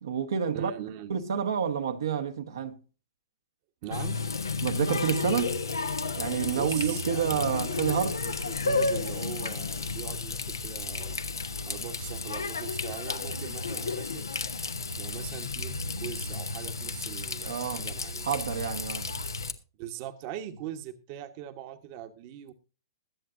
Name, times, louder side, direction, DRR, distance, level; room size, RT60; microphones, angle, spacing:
voice 1, 0.0-0.7 1.1-2.8 4.6-5.6 6.2-8.2 17.4-17.9 18.2-19.1, right 7 dB, 70° right, 1.2 m, -29 dB
voice 2, 0.5-1.1 3.8-4.2 6.5-7.7 8.2-11.2 11.7-14.3 15.0-18.3 19.8-22.5, right 10 dB, 45° right, 1.2 m, -41 dB
Water tap faucet, 3.9-19.5, left 3 dB, 90° left, 1.0 m, -32 dB
21.5 x 7.8 x 2.6 m
hypercardioid pair, 120°, 2 cm